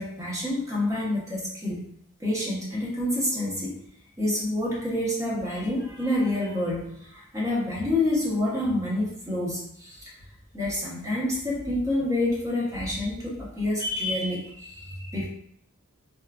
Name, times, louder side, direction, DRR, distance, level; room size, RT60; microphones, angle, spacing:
voice 1, 0.0-1.8 2.2-3.8 4.2-10.1 10.5-15.3, left 1 dB, 15° right, -5 dB, 0.8 m, -28 dB
3.0 x 2.2 x 2.4 m, 0.70 s
head